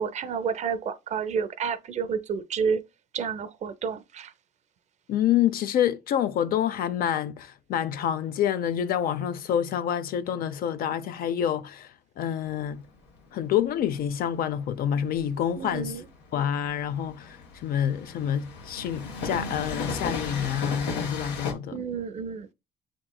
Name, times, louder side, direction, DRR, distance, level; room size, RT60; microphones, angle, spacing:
voice 1, 0.0-2.8 3.1-4.3 15.6-16.1 21.7-22.5, right 6 dB, 45° right, 0.5 m, -30 dB
voice 2, 5.1-12.8 13.3-16.0 16.3-21.8, left 10 dB, 60° left, 0.5 m, -27 dB
Train, 12.4-21.5, left 4 dB, 90° left, 0.9 m, -36 dB
7.5 x 3.0 x 2.2 m
cardioid pair, 110°, 17 cm